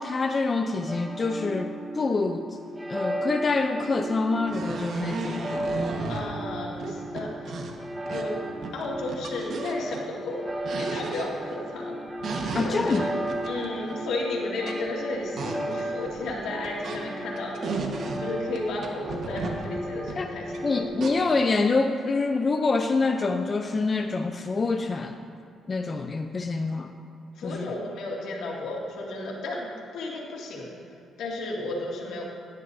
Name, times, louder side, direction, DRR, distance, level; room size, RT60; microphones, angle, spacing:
voice 1, 0.0-2.4 2.9-5.7 12.5-13.1 20.2-20.3 20.6-25.2 25.7-26.9 27.4-27.7, left 3 dB, 35° left, 5 dB, 0.5 m, -26 dB
sound 1, 0.9-20.8, right 1 dB, 15° right, 1.0 m, -35 dB
sound 2, 4.0-4.1 4.5-6.3 6.8-8.4 8.6-10.0 10.5-11.5 12.1-14.2 14.6-14.9 15.1-17.0 17.3-18.2 18.6-21.1, right 3 dB, 60° right, 1.4 m, -34 dB
voice 2, 6.1-7.3 8.1-10.4 10.7-12.0 12.6-13.1 13.4-17.6 18.2-20.9 27.3-29.7 29.9-30.7 31.2-32.2, left 2 dB, 80° left, -3 dB, 2.3 m, -33 dB
17.5 x 10.5 x 2.7 m, 2.7 s
cardioid pair, 90°, 0 cm